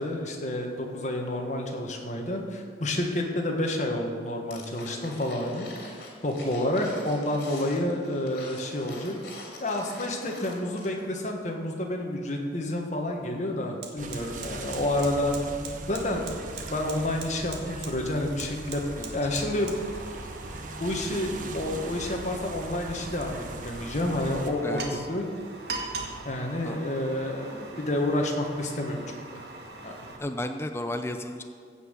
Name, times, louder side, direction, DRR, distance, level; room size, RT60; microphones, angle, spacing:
voice 1, 0.0-9.2 9.6-15.3 15.9-18.8 19.1-19.8 20.8-24.8 25.1-25.2 26.2-29.4 29.8-30.1, left 1 dB, 40° left, 1 dB, 1.6 m, -29 dB
sound 1, 4.5-11.1 11.4-11.5, left 2 dB, 60° left, 3.0 m, -44 dB
Fire, 12.7-12.8 13.2-30.2, right 3 dB, 65° right, 1.7 m, -42 dB
sound 2, 14.0-24.5, right 2 dB, 45° right, 0.9 m, -40 dB
voice 2, 24.6-25.1 26.6-26.8 30.2-31.4, left 1 dB, 15° left, 6 dB, 0.5 m, -33 dB
15.5 x 5.7 x 8.3 m, 2.1 s
head